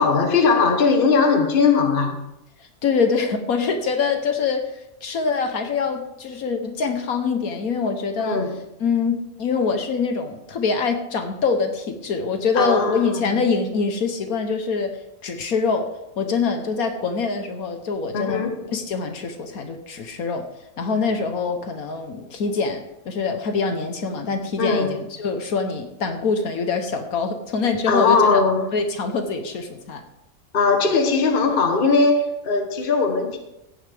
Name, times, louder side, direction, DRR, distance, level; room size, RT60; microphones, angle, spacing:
voice 1, 0.0-2.2 8.2-8.6 12.5-13.4 18.1-18.6 20.9-21.0 24.6-25.0 27.9-28.7 30.5-33.4, left 4 dB, 40° left, 5 dB, 1.3 m, -19 dB
voice 2, 2.8-8.4 8.8-18.4 18.7-20.5 20.8-28.4 28.7-30.0, left 4 dB, 70° left, 6 dB, 1.5 m, -24 dB
15.0 x 9.7 x 3.5 m, 0.87 s
omnidirectional pair, 1.6 m